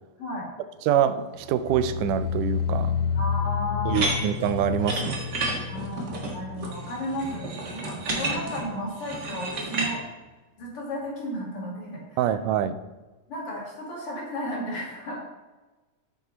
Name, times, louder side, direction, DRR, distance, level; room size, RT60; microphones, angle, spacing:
voice 1, 0.2-0.5 3.1-4.1 5.7-10.0 10.6-12.4 13.3-15.2, left 1 dB, 45° left, -4 dB, 3.0 m, -34 dB
voice 2, 0.8-2.9 3.9-5.3 12.2-12.7, right 9 dB, 90° right, 12 dB, 2.1 m, -25 dB
sound 1, 1.4-8.5 8.8-9.2 9.6-9.7, left 7 dB, 75° left, 1.5 m, -31 dB
sound 2, 3.9-9.9, right 2 dB, 40° right, 1.6 m, -31 dB
9.3 x 8.3 x 4.0 m, 1.2 s
omnidirectional pair, 3.6 m